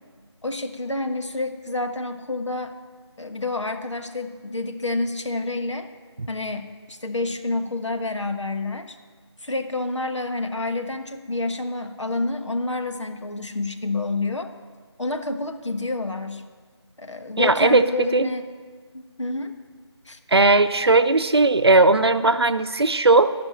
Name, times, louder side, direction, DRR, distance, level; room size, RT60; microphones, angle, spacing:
voice 1, 0.4-2.7 3.2-5.9 6.3-9.0 9.4-14.5 15.0-16.4 17.0-18.4 18.9-19.5 20.0-20.2, left 2 dB, 80° left, 6 dB, 1.3 m, -28 dB
voice 2, 17.4-18.3 20.3-23.3, right 3 dB, 60° right, 10 dB, 0.7 m, -18 dB
12.0 x 5.9 x 9.0 m, 1.5 s
figure-of-eight pair, 175°, 15 cm